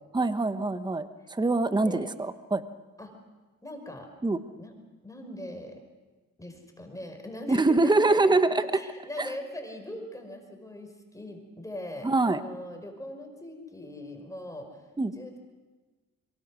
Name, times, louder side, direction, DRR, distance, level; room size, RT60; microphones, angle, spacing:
voice 1, 0.1-2.6 4.2-4.4 7.5-8.6 9.2-9.3 12.0-12.4 15.0-15.1, right 2 dB, 15° right, 10 dB, 1.2 m, -24 dB
voice 2, 3.6-4.1 4.6-4.7 5.0-5.8 6.4-8.4 8.7-14.8 15.1-15.4, left 1 dB, 10° left, 3 dB, 5.2 m, -41 dB
25.0 x 23.5 x 6.3 m, 1.3 s
cardioid pair, 90°, 30 cm